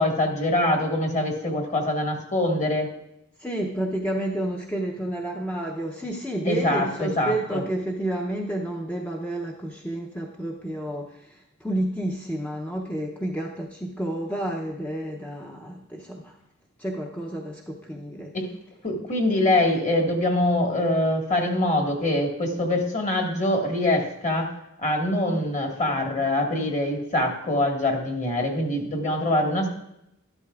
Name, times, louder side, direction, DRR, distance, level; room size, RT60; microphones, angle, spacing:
voice 1, 0.0-2.9 6.4-7.6 18.3-18.5 18.8-24.5 24.8-29.7, left 1 dB, 35° left, 1 dB, 1.6 m, -24 dB
voice 2, 3.4-16.4 16.8-18.3, right 1 dB, 5° left, 0 dB, 0.6 m, -30 dB
12.5 x 11.5 x 2.4 m, 0.83 s
head